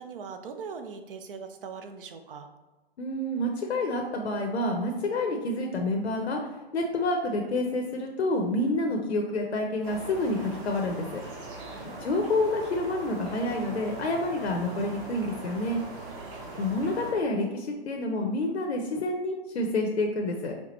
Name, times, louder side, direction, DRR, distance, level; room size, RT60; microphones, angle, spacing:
voice 1, 0.0-2.5 11.7-12.1 16.1-16.7, right 5 dB, 55° right, 7 dB, 0.6 m, -41 dB
voice 2, 3.0-6.4 6.7-11.2 12.0-15.8 16.6-20.6, left 2 dB, 85° left, 2 dB, 0.7 m, -28 dB
sound 1, 9.8-17.1, right 2 dB, 25° right, 1.0 m, -41 dB
4.4 x 3.5 x 3.0 m, 1.2 s
hypercardioid pair, 140°, 32 cm